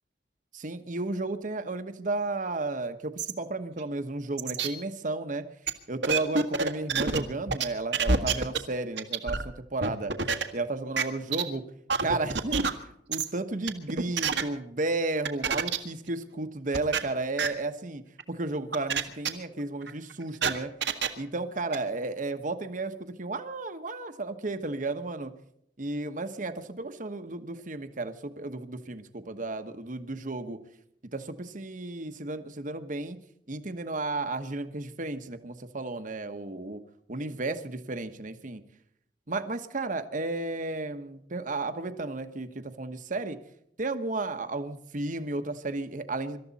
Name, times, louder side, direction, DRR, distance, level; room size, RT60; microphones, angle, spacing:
voice 1, 0.5-5.4 5.9-10.1 10.5-11.6 12.0-12.6 13.1-18.0 18.3-20.7 21.2-25.3 25.8-30.6 31.1-33.2 33.5-36.8 37.1-38.6 39.3-43.4 43.8-46.4, right 2 dB, 50° right, 9 dB, 1.2 m, -33 dB
sound 1, 3.2-3.3 3.8-3.9 4.4-4.7 5.7-5.8 6.0-7.2 7.5-7.6 7.9-8.6 9.0-9.4 9.8-10.4 11.0-11.1 11.3-11.4 11.9-12.7 13.1-13.3 13.7-14.4 15.3-15.8 16.1-16.2 16.7-17.0 17.4-17.5 18.2-18.3 18.7-19.0 19.3-19.4 19.8-21.1 21.7-21.8, right 5 dB, 80° right, 1.6 m, -26 dB
25.0 x 13.0 x 4.1 m, 0.73 s
head